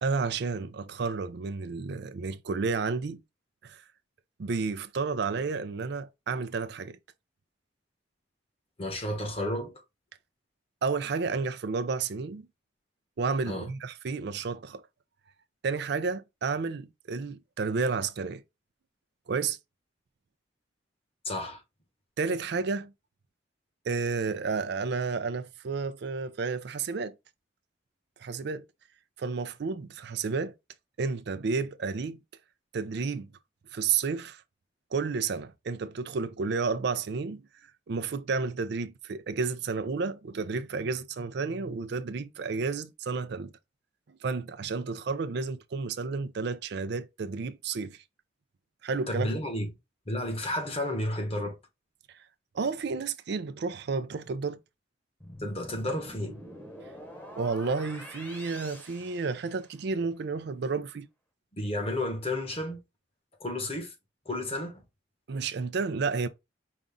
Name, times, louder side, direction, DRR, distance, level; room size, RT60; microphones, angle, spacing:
voice 1, 0.0-3.2 3.6-3.8 4.4-7.0 10.8-12.5 13.2-14.8 15.6-18.4 19.3-19.6 22.2-22.9 23.9-27.1 28.2-28.7 29.2-30.5 31.0-32.2 32.7-33.3 33.7-34.4 34.9-37.4 37.9-43.5 44.1-48.0 48.8-49.3 52.1-52.2 52.5-54.6 57.4-61.1 65.3-66.3, right 4 dB, 60° right, 0.4 m, -31 dB
voice 2, 8.8-9.7 13.5-13.7 21.2-21.6 49.1-49.7 50.1-51.6 55.4-56.4 61.5-62.8 63.4-63.9 64.2-64.8, left 1 dB, 30° left, 1.3 m, -32 dB
sound 1, 55.2-60.0, equal, 10° left, 1.1 m, -46 dB
5.1 x 2.4 x 3.7 m
head